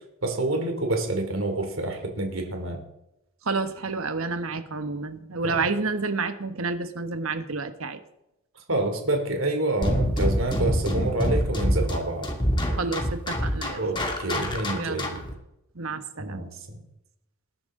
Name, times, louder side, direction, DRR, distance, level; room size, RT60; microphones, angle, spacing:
voice 1, 0.2-2.8 5.4-5.7 8.7-12.3 13.7-15.2 16.2-16.8, right 2 dB, 70° right, 4 dB, 3.0 m, -28 dB
voice 2, 3.4-8.0 12.8-13.8 14.7-15.2 15.7-16.5, right 3 dB, 90° right, 9 dB, 1.3 m, -29 dB
sound 1, 9.8-15.3, equal, 25° left, 2.3 m, -26 dB
20.0 x 10.5 x 3.8 m, 0.86 s
head